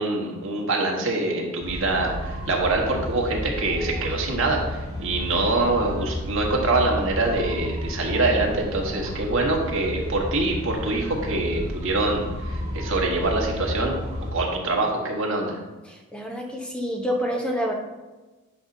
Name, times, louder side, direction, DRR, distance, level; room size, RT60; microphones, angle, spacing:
voice 1, 0.0-14.0 14.3-15.6, right 2 dB, 65° right, 0 dB, 1.5 m, -25 dB
sound 1, 1.6-14.3, equal, 25° right, 2.2 m, -32 dB
voice 2, 15.8-17.7, equal, 5° left, 1 dB, 1.0 m, -28 dB
9.8 x 5.4 x 2.8 m, 1.2 s
head